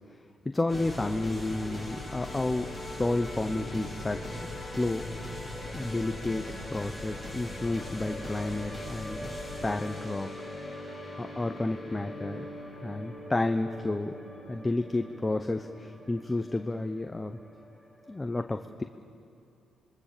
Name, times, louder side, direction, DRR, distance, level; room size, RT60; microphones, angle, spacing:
voice 1, 0.1-5.1 5.7-9.3 9.6-10.3 11.2-12.5 12.8-14.1 14.5-17.4 18.1-18.8, left 2 dB, 15° left, 7 dB, 0.9 m, -31 dB
sound 1, 0.7-18.3, left 1 dB, 5° right, 7.6 m, -40 dB
26.5 x 22.5 x 6.9 m, 2.7 s
cardioid pair, 90°, 0 cm